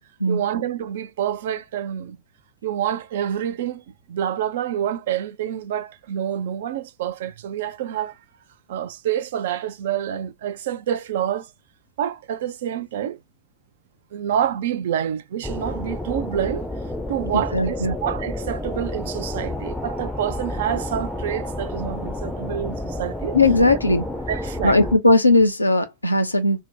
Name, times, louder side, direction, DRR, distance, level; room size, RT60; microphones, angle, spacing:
voice 1, 0.3-2.2 2.6-8.2 8.7-11.5 12.0-13.2 14.1-16.7 17.1-23.4 24.3-24.8, right 10 dB, 55° right, 0.4 m, -27 dB
sound 1, 15.4-25.0, left 1 dB, ahead, 0.5 m, -30 dB
voice 2, 17.3-18.0 23.3-24.0 24.6-26.6, left 2 dB, 85° left, 0.5 m, -18 dB
2.8 x 2.1 x 3.4 m
figure-of-eight pair, 90°, 0 cm